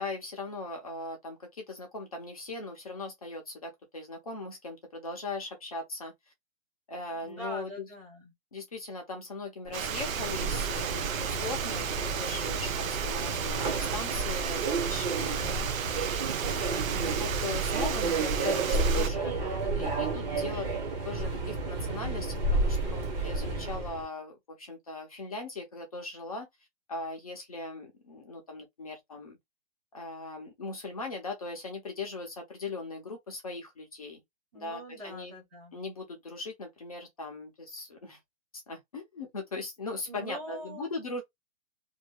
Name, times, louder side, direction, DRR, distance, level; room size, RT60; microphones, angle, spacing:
voice 1, 0.0-6.1 6.9-7.9 8.5-15.7 16.5-19.3 19.7-20.7 21.0-26.5 26.9-29.4 29.9-34.2 34.5-35.3 35.7-38.2 38.7-41.2, left 3 dB, 30° left, 0.7 m, -39 dB
voice 2, 7.1-8.3 34.5-35.8 40.1-40.9, equal, 10° right, 0.6 m, -43 dB
Subway metro underground, 9.7-24.0, right 3 dB, 35° right, 1.3 m, -31 dB
Water, 9.7-19.1, right 8 dB, 80° right, 0.8 m, -34 dB
2.6 x 2.6 x 3.4 m
hypercardioid pair, 180°, 40 cm